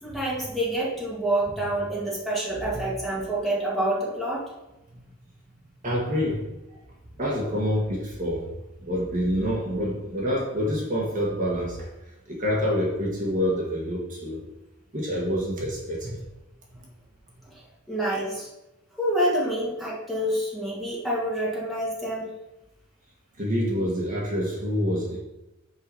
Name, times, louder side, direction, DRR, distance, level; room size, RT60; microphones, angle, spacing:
voice 1, 0.0-4.4 17.9-18.5 19.0-22.3, right 1 dB, ahead, -6 dB, 1.6 m, -27 dB
voice 2, 5.8-6.4 7.2-8.5 8.8-11.9 12.3-14.4 14.9-16.2 23.4-25.2, equal, 40° right, -3 dB, 1.4 m, -27 dB
5.5 x 4.8 x 5.5 m, 0.97 s
head